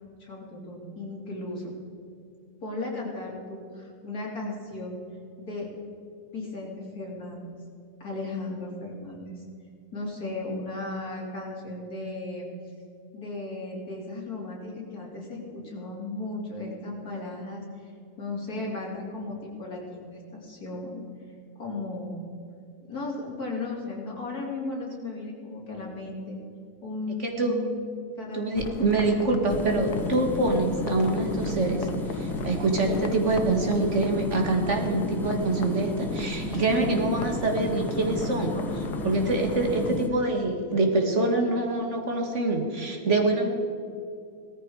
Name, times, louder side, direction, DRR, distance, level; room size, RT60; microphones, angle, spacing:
voice 1, 0.2-1.7 2.6-5.0 5.4-5.7 6.3-7.5 8.0-9.4 9.9-12.5 13.1-17.9 18.2-20.0 20.3-21.0 21.6-22.2 22.9-26.4 26.8-27.8 28.2-28.8 38.5-38.7, left 2 dB, 70° left, -2 dB, 3.9 m, -35 dB
voice 2, 27.2-27.6 28.3-38.6 39.0-43.6, right 2 dB, 50° right, 3 dB, 2.1 m, -25 dB
sound 1, 28.6-39.9, left 5 dB, 85° left, 1.6 m, -39 dB
sound 2, 29.5-40.1, left 1 dB, ahead, 1.1 m, -32 dB
18.0 x 14.0 x 4.9 m, 2.5 s
omnidirectional pair, 1.6 m